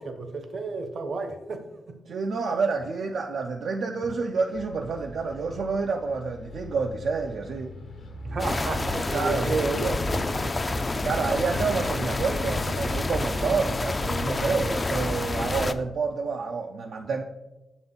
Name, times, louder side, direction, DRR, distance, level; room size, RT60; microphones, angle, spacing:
voice 1, 0.0-2.0 8.2-9.5, right 3 dB, 55° right, 0.8 m, -33 dB
voice 2, 2.1-7.7 9.1-10.5 10.9-17.2, right 4 dB, 70° right, 0.4 m, -28 dB
Bus, 4.5-12.4, left 1 dB, 65° left, 0.8 m, -42 dB
sound 1, 8.4-15.7, left 2 dB, 30° left, 0.3 m, -28 dB
6.8 x 4.0 x 3.8 m
cardioid pair, 95°, 0 cm